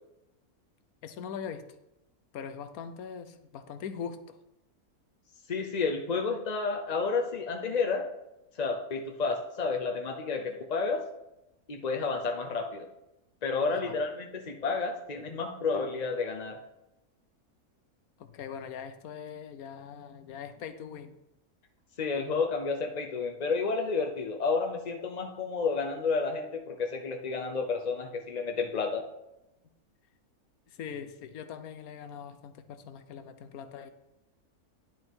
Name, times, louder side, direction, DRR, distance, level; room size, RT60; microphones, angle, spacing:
voice 1, 1.0-1.7 2.3-4.4 13.7-13.9 18.2-21.1 30.7-33.9, left 7 dB, 75° left, 10 dB, 1.2 m, -41 dB
voice 2, 5.5-8.1 8.6-11.0 11.7-12.9 13.4-16.6 22.0-29.1, left 4 dB, 45° left, 2 dB, 0.5 m, -31 dB
10.5 x 6.1 x 4.6 m, 0.91 s
omnidirectional pair, 1.5 m